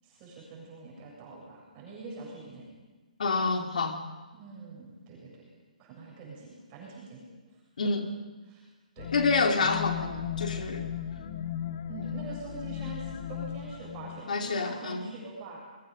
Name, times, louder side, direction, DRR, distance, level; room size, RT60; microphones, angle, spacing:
voice 1, 0.0-2.7 4.3-5.5 5.8-7.2 8.4-8.7 8.9-9.1 11.9-15.6, right 3 dB, 25° right, -5 dB, 7.7 m, -44 dB
voice 2, 3.2-4.0 7.8-8.0 9.1-10.9 14.3-15.1, left 4 dB, 65° left, 4 dB, 3.0 m, -28 dB
sound 1, 9.0-14.2, left 10 dB, 45° left, 1.1 m, -36 dB
28.5 x 22.5 x 5.4 m, 1.3 s
hypercardioid pair, 155°, 5 cm